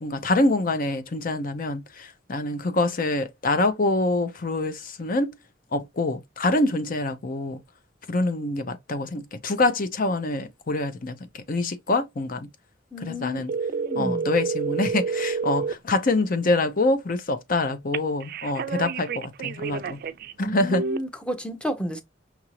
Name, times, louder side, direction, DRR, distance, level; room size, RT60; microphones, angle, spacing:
voice 1, 0.0-5.3 5.7-7.6 8.1-12.5 13.0-13.5 14.0-20.0 20.4-20.8, left 2 dB, 50° left, 0.8 m, -25 dB
voice 2, 12.9-14.3 20.4-22.0, equal, 5° left, 0.7 m, -32 dB
sound 1, 13.5-15.7 17.9-20.3 20.7-21.0, right 5 dB, 55° right, 0.4 m, -29 dB
5.8 x 2.6 x 2.9 m
head